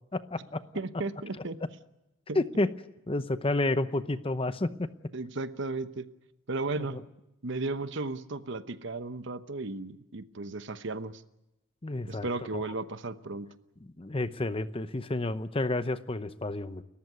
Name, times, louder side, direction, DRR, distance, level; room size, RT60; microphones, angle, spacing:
voice 1, 0.1-0.6 2.3-2.7 3.1-4.9 6.8-7.0 11.8-12.3 12.5-12.6 14.0-16.8, left 2 dB, 25° left, 12 dB, 0.8 m, -30 dB
voice 2, 0.7-1.6 2.3-2.4 5.1-6.1 6.5-7.0 7.4-11.2 12.1-13.5, right 3 dB, 60° right, 12 dB, 1.0 m, -35 dB
30.0 x 14.5 x 9.5 m, 0.91 s
head